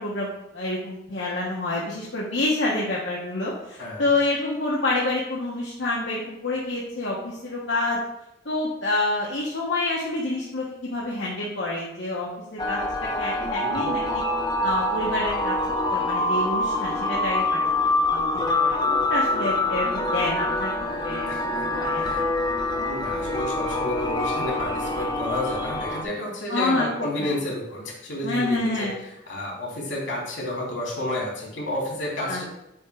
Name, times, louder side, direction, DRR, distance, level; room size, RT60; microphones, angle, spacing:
voice 1, 0.0-8.0 8.4-12.8 13.2-14.2 14.6-15.5 15.9-17.6 18.1-20.7 21.0-22.3 26.5-26.9 27.2-27.3 28.2-29.0 32.3-32.4, left 2 dB, 65° left, -5 dB, 1.2 m, -28 dB
sound 1, 12.6-26.0, left 2 dB, 25° left, 0.8 m, -25 dB
voice 2, 21.3-21.6 22.0-22.2 22.8-32.4, left 1 dB, 80° left, -3 dB, 2.7 m, -31 dB
7.7 x 3.6 x 5.0 m, 0.86 s
head